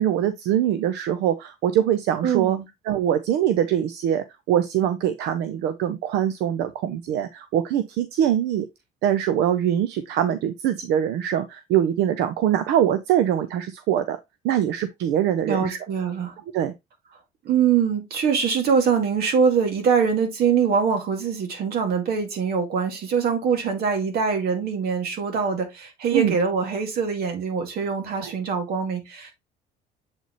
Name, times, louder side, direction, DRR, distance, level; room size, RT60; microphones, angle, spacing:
voice 1, 0.0-2.6 2.9-8.7 9.0-14.2 14.4-15.8 16.5-16.7 26.1-26.4 28.2-28.3, right 10 dB, 85° right, 0.7 m, -23 dB
voice 2, 2.2-2.6 15.4-16.3 17.4-29.3, right 6 dB, 65° right, 2.2 m, -23 dB
8.0 x 4.1 x 3.0 m
cardioid pair, 110°, 17 cm